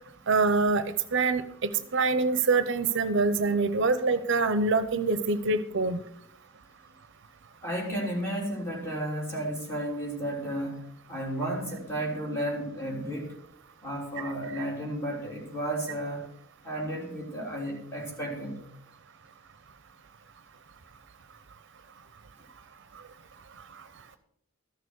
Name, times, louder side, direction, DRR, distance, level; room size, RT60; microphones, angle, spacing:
voice 1, 0.3-0.8 1.1-6.0 14.5-14.6, right 3 dB, 60° right, 12 dB, 0.7 m, -25 dB
voice 2, 7.6-13.4 13.8-16.3 16.6-18.6, right 1 dB, 15° left, -1 dB, 3.3 m, -33 dB
13.5 x 6.8 x 6.4 m, 0.71 s
head